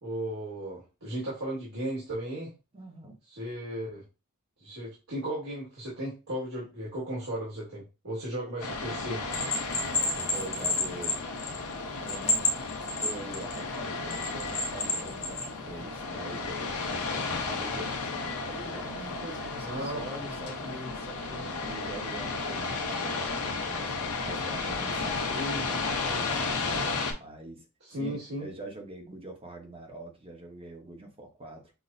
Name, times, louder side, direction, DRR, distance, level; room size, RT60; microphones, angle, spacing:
voice 1, 0.0-2.5 3.3-4.0 4.6-9.2 19.6-20.0 25.4-25.6 27.9-28.5, right 1 dB, 70° right, 1.7 m, -35 dB
voice 2, 2.7-3.2 9.7-11.2 11.7-12.5 13.0-23.9 24.2-26.6 27.1-27.7 28.0-31.7, right 1 dB, 25° right, 0.9 m, -44 dB
sound 1, 8.6-27.1, left 3 dB, 90° left, 0.8 m, -33 dB
Bell, 9.3-11.7 12.1-13.6 14.1-15.5, left 2 dB, 30° left, 0.8 m, -29 dB
5.9 x 2.1 x 2.6 m
head